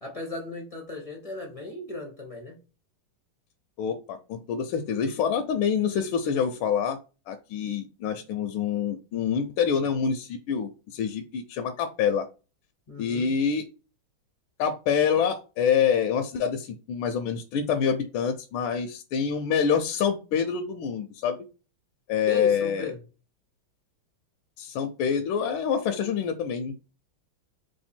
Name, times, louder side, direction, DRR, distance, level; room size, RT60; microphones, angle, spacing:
voice 1, 0.0-2.6 12.9-13.3 22.3-23.0, left 2 dB, 40° left, 0 dB, 0.5 m, -36 dB
voice 2, 3.8-7.0 7.3-12.3 13.0-13.6 14.6-21.4 22.1-22.9 24.6-26.8, left 7 dB, 80° left, 6 dB, 1.4 m, -26 dB
3.5 x 3.2 x 4.2 m, 0.32 s
omnidirectional pair, 2.3 m